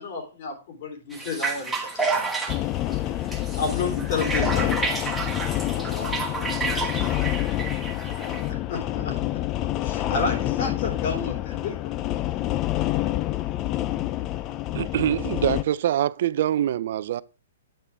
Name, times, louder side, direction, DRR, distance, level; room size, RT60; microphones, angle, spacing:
voice 1, 0.0-2.3 3.5-4.9 8.1-9.1 9.8-11.9, left 4 dB, 50° left, 3.2 m, -31 dB
sound 1, 1.1-8.5, right 4 dB, 5° right, 1.2 m, -30 dB
sound 2, 2.5-15.6, left 14 dB, 30° left, 0.4 m, -27 dB
voice 2, 5.7-7.6, left 2 dB, 85° left, 3.5 m, -43 dB
voice 3, 14.7-17.2, right 11 dB, 60° right, 0.4 m, -24 dB
8.8 x 6.7 x 3.4 m
hypercardioid pair, 140°, 0 cm